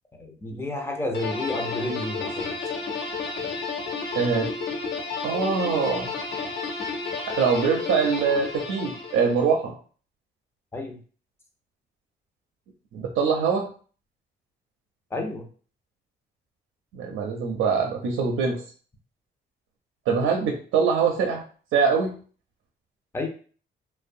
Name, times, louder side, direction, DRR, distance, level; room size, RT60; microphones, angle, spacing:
voice 1, 0.1-2.5 10.7-11.0 15.1-15.5 23.1-23.3, left 2 dB, 10° left, 3 dB, 0.6 m, -31 dB
sound 1, 1.1-9.5, left 4 dB, 60° left, 0.8 m, -31 dB
voice 2, 4.1-4.5 5.2-6.1 7.4-9.7 12.9-13.7 16.9-18.6 20.1-21.4 21.7-22.1, right 5 dB, 80° right, 1 dB, 0.5 m, -23 dB
2.6 x 2.1 x 2.5 m, 0.41 s
cardioid pair, 90°, 20 cm